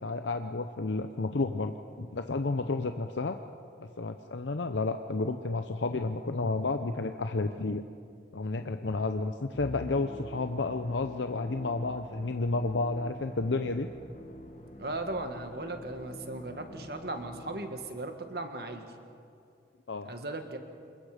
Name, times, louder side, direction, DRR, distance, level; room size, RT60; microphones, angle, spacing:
voice 1, 0.0-3.4 3.8-7.8 8.3-13.9 19.9-20.1, left 3 dB, 90° left, 7 dB, 0.7 m, -31 dB
Musical instrument, 9.5-18.1, equal, 40° left, 1.5 m, -47 dB
voice 2, 14.8-18.8 20.0-20.6, right 2 dB, 60° right, 6 dB, 1.8 m, -37 dB
26.5 x 21.5 x 5.1 m, 2.5 s
head